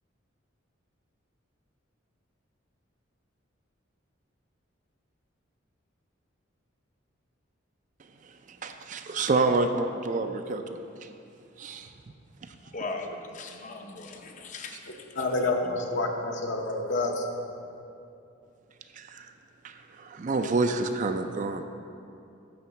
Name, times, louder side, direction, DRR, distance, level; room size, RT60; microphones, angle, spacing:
voice 1, 8.2-11.1 11.6-11.9 12.4-12.6 18.9-19.3 19.6-21.6, right 3 dB, 40° right, 7 dB, 0.4 m, -29 dB
voice 2, 12.7-15.2, left 3 dB, 40° left, 4 dB, 0.6 m, -39 dB
voice 3, 15.2-17.3, left 2 dB, 60° left, 2 dB, 0.9 m, -28 dB
10.0 x 3.8 x 7.1 m, 2.6 s
head